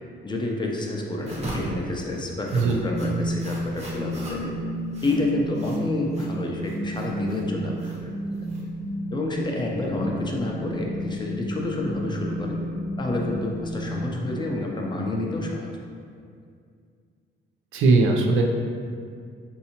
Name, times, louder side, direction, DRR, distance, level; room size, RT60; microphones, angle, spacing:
voice 1, 0.2-4.5 5.0-8.1 9.1-12.6 13.0-15.7, left 2 dB, 20° left, -1 dB, 0.5 m, -29 dB
sound 1, 1.2-9.1, right 1 dB, 35° right, 0.9 m, -39 dB
sound 2, 2.9-14.9, equal, 50° left, 1.1 m, -32 dB
voice 2, 17.7-18.4, right 3 dB, 85° right, 1 dB, 0.5 m, -19 dB
4.0 x 2.7 x 2.8 m, 2.2 s
cardioid pair, 90°, 20 cm